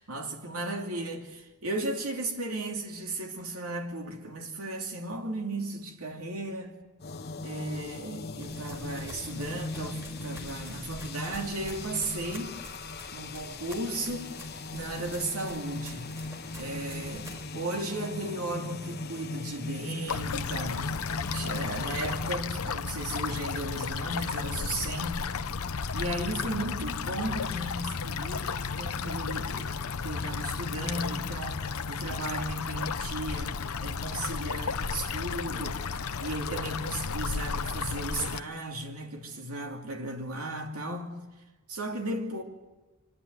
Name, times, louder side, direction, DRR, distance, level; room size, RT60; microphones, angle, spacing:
voice 1, 0.0-6.7 7.4-12.6 13.1-14.3 14.7-16.2 16.5-21.0 21.3-25.3 25.9-41.2 41.7-42.4, right 1 dB, 85° right, 2.6 m, -35 dB
sound 1, 7.0-22.3, left 2 dB, 50° left, 1.0 m, -39 dB
sound 2, 8.4-17.4, equal, 10° right, 4.1 m, -47 dB
sound 3, 20.1-38.4, left 5 dB, 85° left, 0.7 m, -33 dB
25.0 x 11.0 x 9.5 m
head